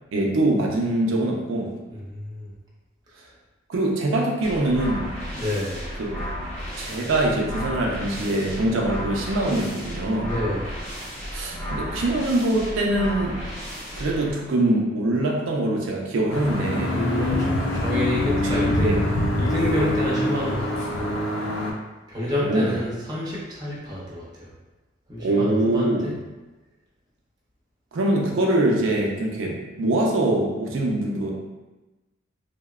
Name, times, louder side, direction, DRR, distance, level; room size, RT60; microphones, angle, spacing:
voice 1, 0.1-1.7 3.7-5.2 6.0-6.2 6.8-10.3 11.3-13.4 13.9-17.0 18.4-18.5 18.8-19.0 22.4-22.8 25.2-26.2 27.9-31.3, right 1 dB, 80° right, -1 dB, 0.4 m, -23 dB
voice 2, 1.9-2.5 5.3-5.9 10.2-10.7 16.8-19.0 19.4-21.2 22.1-24.5 25.1-26.2, left 1 dB, 20° right, -6 dB, 0.5 m, -28 dB
sound 1, 4.4-14.3, equal, 15° left, 0.9 m, -33 dB
sound 2, 16.3-21.7, left 1 dB, 85° left, 0.4 m, -24 dB
2.7 x 2.0 x 2.3 m, 1.1 s
head